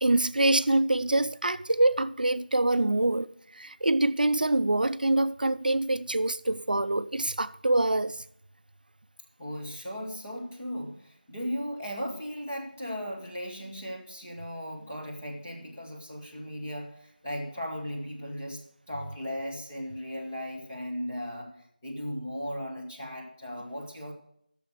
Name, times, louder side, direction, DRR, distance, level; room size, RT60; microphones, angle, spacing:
voice 1, 0.0-3.3 3.5-8.2, right 2 dB, 65° right, 0.4 m, -25 dB
voice 2, 9.4-24.1, equal, 15° left, 1.3 m, -37 dB
10.0 x 6.9 x 6.3 m
figure-of-eight pair, 175°, 5 cm